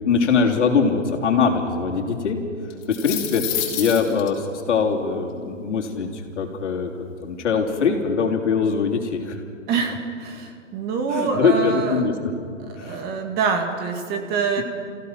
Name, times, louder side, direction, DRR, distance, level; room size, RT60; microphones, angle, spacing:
voice 1, 0.0-2.4 2.9-6.9 7.2-9.4 11.1-12.1 12.8-13.0 14.6-14.7, left 5 dB, 65° left, 1 dB, 3.3 m, -22 dB
sound 1, 2.7-4.3, left 11 dB, 35° left, 4.9 m, -28 dB
voice 2, 9.7-12.0 12.7-14.6, right 5 dB, 25° right, 4 dB, 2.2 m, -25 dB
27.5 x 16.0 x 6.0 m, 2.3 s
hypercardioid pair, 135°, 38 cm